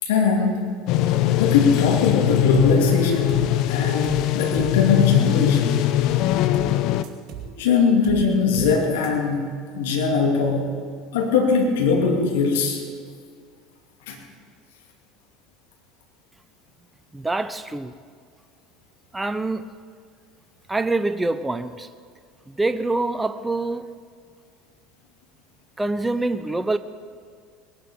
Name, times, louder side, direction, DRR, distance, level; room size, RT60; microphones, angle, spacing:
voice 1, 0.0-0.6 1.4-4.1 4.3-5.8 7.6-9.5 9.7-10.7 11.1-12.8 14.1-14.2, left 4 dB, 75° left, 2.6 m, -21 dB
sound 1, 0.9-7.0, left 13 dB, 60° left, 0.6 m, -21 dB
sound 2, 2.5-2.8 3.0-3.5 4.0-4.3 4.5-4.8 6.5-6.8 7.0-7.5 8.0-8.3 8.5-8.8 9.0-9.1, right 9 dB, 50° right, 3.2 m, -37 dB
voice 2, 17.1-17.9 19.1-19.7 20.7-21.9 22.5-23.9 25.8-26.8, right 2 dB, 10° right, 0.7 m, -25 dB
20.5 x 11.5 x 5.2 m
hypercardioid pair, 75°, 0 cm